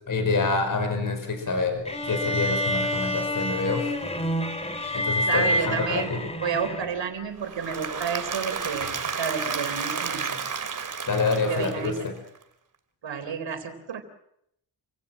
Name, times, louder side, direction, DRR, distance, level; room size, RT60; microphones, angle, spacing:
voice 1, 0.1-3.8 4.9-6.2 11.1-11.9, left 3 dB, 45° left, 5 dB, 5.4 m, -26 dB
sound 1, 1.9-7.1, left 1 dB, 15° left, 3.1 m, -28 dB
voice 2, 5.3-10.4 11.5-12.0 13.0-14.0, right 6 dB, 70° right, 9 dB, 3.8 m, -31 dB
Applause / Crowd, 7.4-12.4, right 6 dB, 45° right, 2.3 m, -32 dB
29.0 x 16.5 x 7.7 m, 0.76 s
wide cardioid pair, 115°, 45 cm